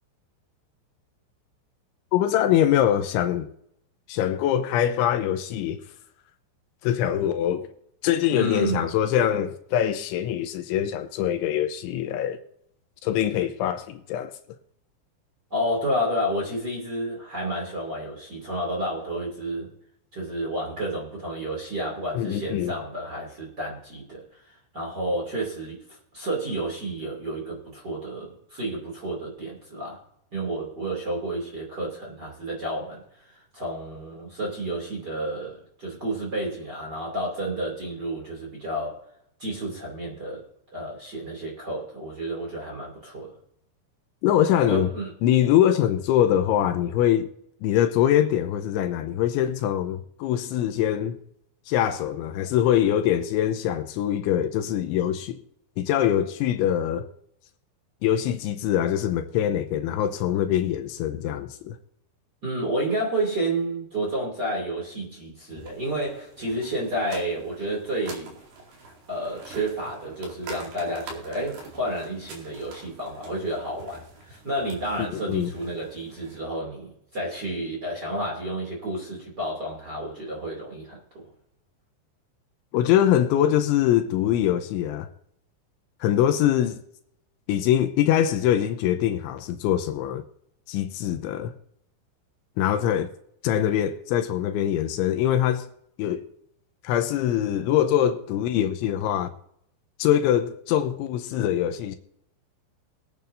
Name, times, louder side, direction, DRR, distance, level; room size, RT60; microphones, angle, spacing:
voice 1, 2.1-3.5 4.1-5.8 6.8-7.7 8.0-12.4 13.0-14.3 22.1-22.7 44.2-44.9 45.2-47.3 47.6-51.2 51.7-55.4 55.8-57.1 58.0-61.8 75.0-75.5 82.7-85.1 86.0-86.8 87.5-90.2 90.7-91.5 92.6-93.1 93.4-95.7 96.0-96.3 96.8-99.3 100.0-102.0, left 11 dB, 80° left, 3.0 m, -23 dB
voice 2, 8.3-8.9 15.5-19.7 20.1-24.2 24.7-30.0 30.3-33.0 33.5-39.0 39.4-40.5 40.7-43.3 44.6-45.1 62.4-68.3 69.1-81.3, right 1 dB, 30° right, 2.4 m, -30 dB
sound 1, 65.6-76.4, right 3 dB, 65° right, 4.4 m, -45 dB
22.0 x 9.0 x 2.7 m
omnidirectional pair, 5.6 m